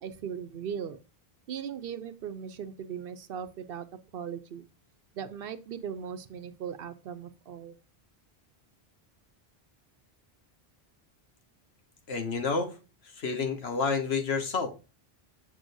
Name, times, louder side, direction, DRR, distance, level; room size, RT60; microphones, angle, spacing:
voice 1, 0.0-1.0 1.5-3.9 4.1-4.6 5.1-7.8, right 8 dB, 70° right, 0.8 m, -38 dB
voice 2, 12.1-12.7 13.2-14.7, left 4 dB, 90° left, 1.4 m, -29 dB
7.0 x 6.2 x 2.6 m
omnidirectional pair, 1.0 m